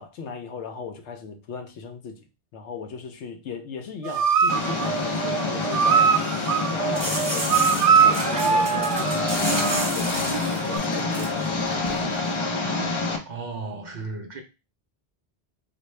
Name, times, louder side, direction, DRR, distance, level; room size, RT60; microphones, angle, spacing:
voice 1, 0.0-2.2 2.5-6.2 6.7-12.2, left 6 dB, 85° left, 1.0 m, -37 dB
sound 1, 4.0-9.9 10.7-10.8, right 7 dB, 90° right, 0.9 m, -23 dB
Engine, 4.5-13.2, left 3 dB, 50° left, 0.3 m, -27 dB
sound 2, 6.9-12.0, right 2 dB, 25° right, 1.1 m, -29 dB
voice 2, 13.3-14.4, right 3 dB, 55° right, 0.5 m, -34 dB
4.1 x 2.1 x 3.1 m
omnidirectional pair, 1.1 m